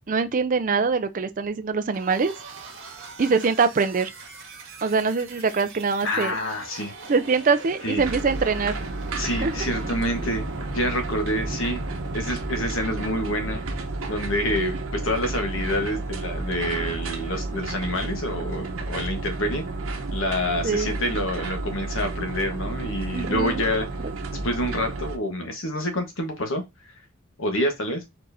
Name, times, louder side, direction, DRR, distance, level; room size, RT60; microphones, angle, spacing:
voice 1, 0.1-2.3 3.2-4.1 4.8-6.4 7.1-8.8 9.4-9.7 20.6-20.9 23.1-23.6, right 4 dB, 40° right, 0.4 m, -23 dB
sound 1, 1.9-18.5, right 2 dB, 65° right, 1.6 m, -41 dB
voice 2, 6.0-6.9 7.8-8.0 9.2-10.4 10.7-11.8 12.1-13.6 14.1-19.6 20.1-23.9 24.4-26.6 27.4-28.0, left 1 dB, 70° left, 1.3 m, -27 dB
sound 2, 8.0-25.2, right 2 dB, 90° right, 0.9 m, -32 dB
4.5 x 4.2 x 2.7 m
head